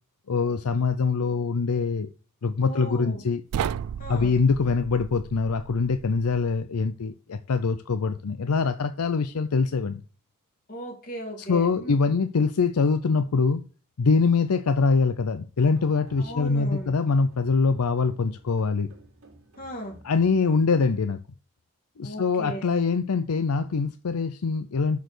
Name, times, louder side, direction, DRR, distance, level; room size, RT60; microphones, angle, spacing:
voice 1, 0.3-2.1 2.4-3.4 4.1-10.0 11.5-13.6 14.0-18.9 20.0-21.2 22.0-25.0, left 4 dB, 75° left, 0.5 m, -24 dB
voice 2, 2.6-3.2 4.0-4.3 10.7-12.0 16.2-16.9 19.6-20.0 22.0-22.7, equal, 40° left, 3.2 m, -37 dB
sound 1, 3.5-6.6, right 8 dB, 90° right, 0.3 m, -34 dB
sound 2, 15.6-21.1, right 2 dB, 65° right, 2.2 m, -52 dB
6.8 x 6.5 x 4.5 m
head